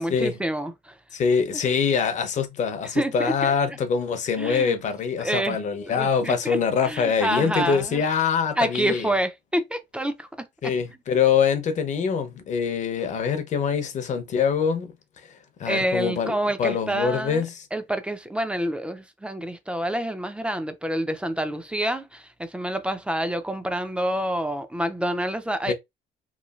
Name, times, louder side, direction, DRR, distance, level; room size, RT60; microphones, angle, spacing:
voice 1, 0.0-0.9 3.0-3.8 4.4-4.7 5.2-5.6 5.9-6.6 6.8-8.0 8.6-10.5 15.6-17.5 17.7-25.7, right 1 dB, 5° right, 0.4 m, -28 dB
voice 2, 1.1-9.1 10.6-14.9 15.6-17.7 25.7-25.8, left 6 dB, 45° left, 0.7 m, -24 dB
3.1 x 2.3 x 2.3 m
cardioid pair, 110°, 17 cm